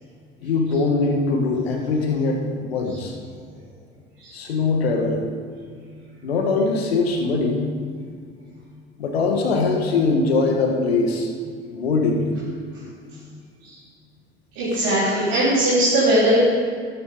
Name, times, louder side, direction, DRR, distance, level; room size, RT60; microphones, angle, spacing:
voice 1, 0.4-3.1 4.3-5.2 6.2-7.6 9.0-11.3 11.7-12.3, left 3 dB, 80° left, 2 dB, 1.5 m, -22 dB
voice 2, 14.6-16.4, right 1 dB, 65° right, -9 dB, 3.7 m, -19 dB
13.5 x 13.0 x 3.7 m, 2.1 s
figure-of-eight pair, 60°, 31 cm